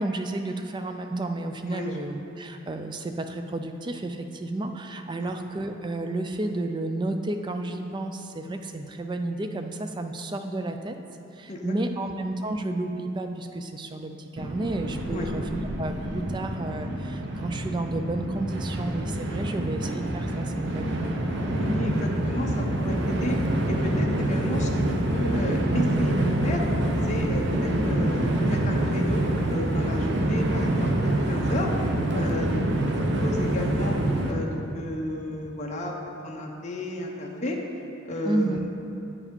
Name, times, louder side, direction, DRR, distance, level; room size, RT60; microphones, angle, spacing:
voice 1, 0.0-11.0 11.3-21.2 38.2-38.7, right 2 dB, 20° right, 6 dB, 0.3 m, -31 dB
voice 2, 1.7-2.0 5.2-5.3 11.5-11.6 11.9-12.0 15.1-15.3 21.6-23.4 23.7-26.6 27.0-31.7 32.1-32.8 33.2-34.0 34.3-35.9 36.2-37.6 38.0-38.6, left 1 dB, 35° left, 0 dB, 0.6 m, -33 dB
Train, 14.4-34.3, right 1 dB, 55° right, 0.7 m, -26 dB
8.3 x 4.8 x 5.2 m, 2.8 s
head